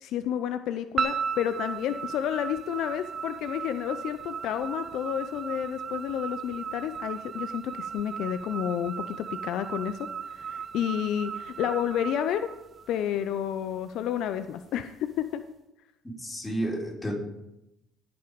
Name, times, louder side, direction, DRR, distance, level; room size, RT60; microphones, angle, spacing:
voice 1, 0.0-12.5 12.9-15.4, left 10 dB, 70° left, 11 dB, 0.5 m, -30 dB
sound 1, 1.0-13.3, right 6 dB, 40° right, 0.7 m, -36 dB
voice 2, 16.2-17.1, right 1 dB, 15° left, -2 dB, 4.2 m, -31 dB
17.0 x 5.9 x 5.1 m, 0.90 s
supercardioid pair, 75°, 0 cm